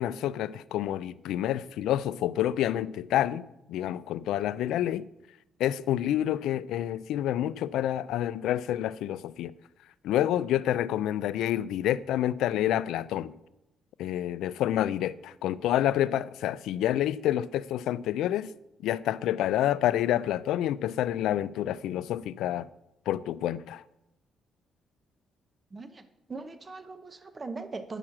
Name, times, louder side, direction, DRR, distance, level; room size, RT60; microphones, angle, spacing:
voice 1, 0.0-5.1 5.6-9.5 10.0-13.3 14.0-18.5 18.8-22.7 23.1-23.8, left 12 dB, 85° left, 0.3 m, -28 dB
voice 2, 25.7-26.0 26.3-28.0, right 3 dB, 30° right, 0.8 m, -40 dB
9.9 x 6.2 x 5.9 m
cardioid pair, 90°, 0 cm